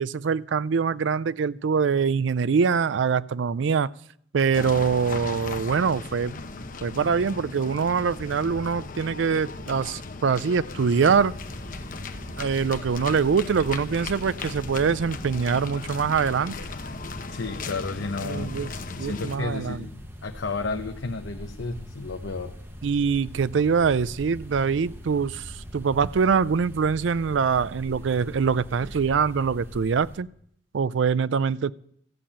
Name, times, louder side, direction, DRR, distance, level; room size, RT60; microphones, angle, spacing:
voice 1, 0.0-3.9 4.3-6.4 6.8-11.3 12.4-16.6 18.2-18.7 19.0-19.9 22.8-30.3 30.7-31.7, right 6 dB, 70° right, 0.4 m, -24 dB
sound 1, 4.5-19.4, left 3 dB, 45° left, 0.8 m, -37 dB
sound 2, 11.1-30.2, equal, 10° right, 0.9 m, -42 dB
voice 2, 17.3-18.6 19.0-22.5, left 3 dB, 85° left, 0.9 m, -32 dB
13.5 x 7.4 x 8.6 m
head